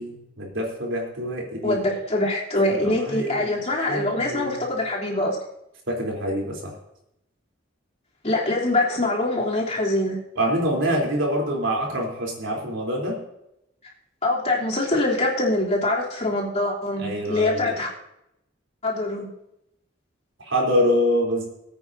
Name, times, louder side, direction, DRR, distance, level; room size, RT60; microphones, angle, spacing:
voice 1, 0.0-1.8 2.7-4.6 5.9-6.7 10.4-13.2 17.0-17.8 20.4-21.5, equal, 80° right, -1 dB, 3.7 m, -26 dB
voice 2, 1.6-5.4 8.2-10.2 14.2-17.9 18.8-19.3, left 2 dB, 35° left, -5 dB, 3.4 m, -24 dB
22.0 x 9.0 x 2.8 m, 0.81 s
head